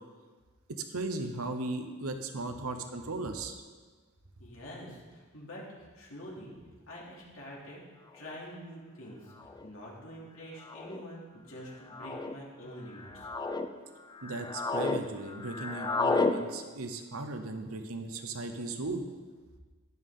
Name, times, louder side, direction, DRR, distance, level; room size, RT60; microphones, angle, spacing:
voice 1, 0.9-3.6 14.2-19.0, right 2 dB, 90° right, 6 dB, 1.0 m, -37 dB
voice 2, 4.4-7.8 8.1-9.3 9.6-13.3, equal, 65° left, -4 dB, 2.9 m, -46 dB
sound 1, 8.3-8.4 9.4-9.7 10.6-11.0 11.9-12.3 12.9-13.7 14.1-15.0 15.3-16.4, left 3 dB, 20° left, 0.5 m, -32 dB
12.0 x 11.0 x 3.8 m, 1.4 s
head